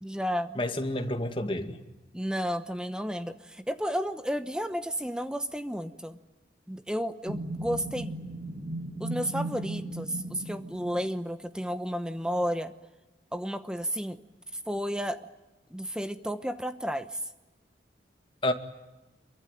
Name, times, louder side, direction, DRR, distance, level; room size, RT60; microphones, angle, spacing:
voice 1, 0.0-0.6 2.1-6.2 6.7-8.1 9.0-12.7 13.3-14.2 14.7-15.3 15.7-17.2, equal, 5° right, 0.9 m, -32 dB
voice 2, 0.6-1.8 18.4-18.5, left 1 dB, 30° left, 2.1 m, -29 dB
sound 1, 7.3-11.2, right 1 dB, 55° right, 2.6 m, -36 dB
27.5 x 23.5 x 9.2 m
head